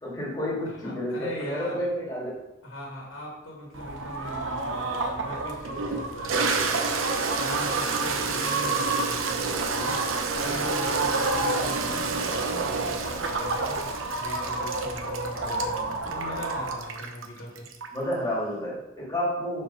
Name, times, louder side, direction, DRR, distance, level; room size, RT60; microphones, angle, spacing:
voice 1, 0.0-2.4 15.3-15.6 17.9-19.6, equal, 20° left, -6 dB, 2.6 m, -30 dB
voice 2, 0.6-1.8 2.6-17.7, left 1 dB, 80° left, -2 dB, 2.2 m, -40 dB
sound 1, 3.7-16.8, right 2 dB, 70° right, 1.1 m, -31 dB
Toilet flush, 4.9-5.0 5.6-18.1, right 4 dB, 90° right, 0.9 m, -30 dB
6.9 x 5.1 x 5.6 m, 0.92 s
head